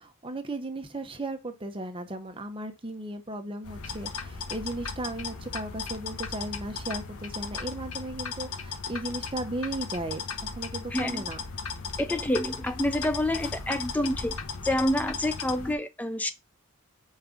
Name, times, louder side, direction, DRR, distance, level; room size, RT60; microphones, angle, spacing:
voice 1, 0.0-11.4, right 1 dB, 25° right, 0.8 m, -36 dB
sound 1, 3.6-15.7, left 5 dB, 80° left, 1.1 m, -36 dB
voice 2, 10.9-11.2 12.0-14.3 14.6-16.3, left 1 dB, 5° left, 0.3 m, -28 dB
5.4 x 3.6 x 5.1 m
head